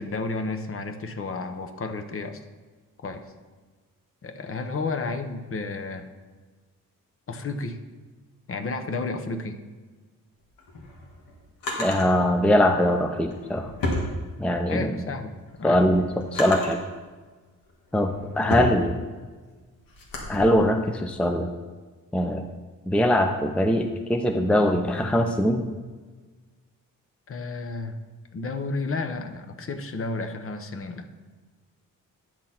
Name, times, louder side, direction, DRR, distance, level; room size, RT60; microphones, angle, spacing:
voice 1, 0.0-2.4 3.0-3.2 4.2-6.1 7.3-7.8 8.5-9.6 14.7-15.8 27.3-28.0 28.3-31.1, left 3 dB, 40° left, 6 dB, 0.8 m, -32 dB
Drawer open or close, 10.4-12.1 13.1-14.8 15.2-16.9 17.5-20.4, left 1 dB, 85° left, 2.0 m, -32 dB
voice 2, 11.8-13.7 14.4-14.9 15.6-16.8 17.9-19.0 20.3-21.5 22.1-22.4 22.9-25.7, left 1 dB, 5° left, 5 dB, 0.5 m, -22 dB
10.5 x 6.1 x 4.3 m, 1.4 s
cardioid pair, 105°, 33 cm